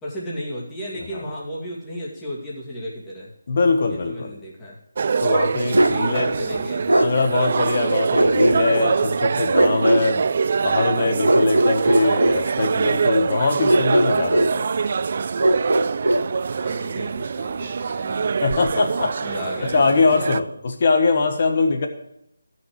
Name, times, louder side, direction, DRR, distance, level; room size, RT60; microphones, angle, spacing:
voice 1, 0.0-3.3 3.9-4.8 5.9-7.1 16.6-18.7 19.2-19.7, equal, 10° left, -6 dB, 2.6 m, -34 dB
voice 2, 3.5-4.4 5.2-6.3 7.0-10.3 10.6-14.5 18.4-19.2 19.7-21.9, left 4 dB, 45° left, 5 dB, 1.5 m, -22 dB
sound 1, 5.0-20.4, right 5 dB, 45° right, 0.3 m, -24 dB
Bark, 5.7-6.0 6.9-7.1 8.1-8.9 9.5-10.1 11.2-12.4 13.7-14.6 15.4-16.3, right 1 dB, 85° right, 1.0 m, -18 dB
13.5 x 6.4 x 5.0 m, 0.79 s
figure-of-eight pair, 160°, 0 cm